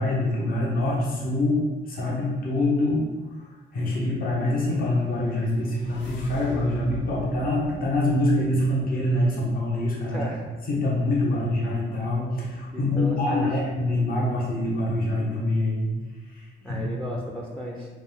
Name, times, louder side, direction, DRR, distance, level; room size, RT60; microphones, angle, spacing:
voice 1, 0.0-3.0 3.3-10.2 10.7-15.9 16.3-16.8, left 1 dB, 45° left, -5 dB, 1.1 m, -25 dB
sound 1, 4.9-9.1, left 2 dB, 70° left, 0.7 m, -42 dB
voice 2, 10.1-10.4 12.7-13.5 16.6-17.9, equal, 5° left, -1 dB, 0.5 m, -34 dB
4.4 x 2.3 x 3.5 m, 1.3 s
cardioid pair, 90°, 20 cm